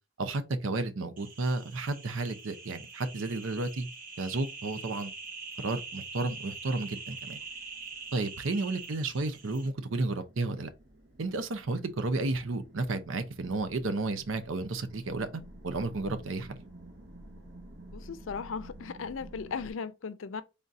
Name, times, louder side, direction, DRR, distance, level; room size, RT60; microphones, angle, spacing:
voice 1, 0.2-3.9 4.2-5.1 5.6-7.4 8.1-10.7 11.2-15.3 15.6-16.6, right 2 dB, 85° right, 0.6 m, -32 dB
sound 1, 1.2-9.7, right 4 dB, 45° right, 0.7 m, -44 dB
sound 2, 5.1-19.7, right 1 dB, 60° right, 1.1 m, -52 dB
voice 2, 17.9-20.4, left 5 dB, 80° left, 0.5 m, -37 dB
4.0 x 3.6 x 2.6 m
head